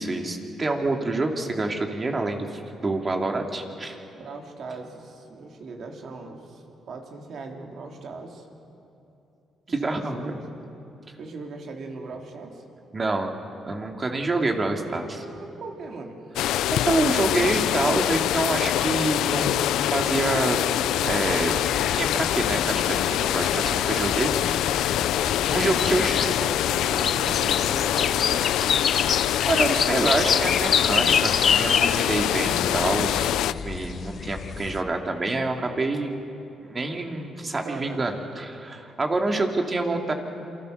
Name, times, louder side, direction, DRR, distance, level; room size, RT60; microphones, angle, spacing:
voice 1, 0.0-4.0 9.7-10.3 12.9-13.3 13.6-15.2 16.7-20.6 21.0-24.7 25.3-26.2 29.5-36.2 36.6-40.1, right 2 dB, 30° right, 3 dB, 2.8 m, -27 dB
voice 2, 4.1-8.5 9.7-10.4 11.2-12.6 14.9-16.3 24.2-24.9 25.7-28.8 37.6-38.1, right 3 dB, 60° right, 2 dB, 3.4 m, -39 dB
sound 1, 16.4-33.5, left 12 dB, 85° left, 0.5 m, -24 dB
sound 2, 21.1-34.8, left 6 dB, 50° left, 0.9 m, -28 dB
28.0 x 24.0 x 6.7 m, 2.8 s
cardioid pair, 90°, 0 cm